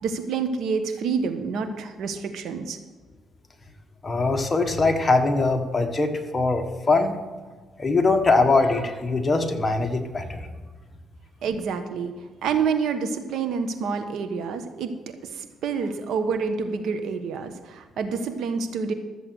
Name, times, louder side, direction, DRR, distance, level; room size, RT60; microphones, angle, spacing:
voice 1, 0.0-2.8 11.4-12.1 12.4-14.9 15.3-18.9, right 5 dB, 75° right, 8 dB, 1.3 m, -28 dB
voice 2, 4.0-7.2 7.8-10.5, left 3 dB, 25° left, 4 dB, 1.6 m, -22 dB
13.5 x 7.7 x 6.3 m, 1.4 s
cardioid pair, 90°, 0 cm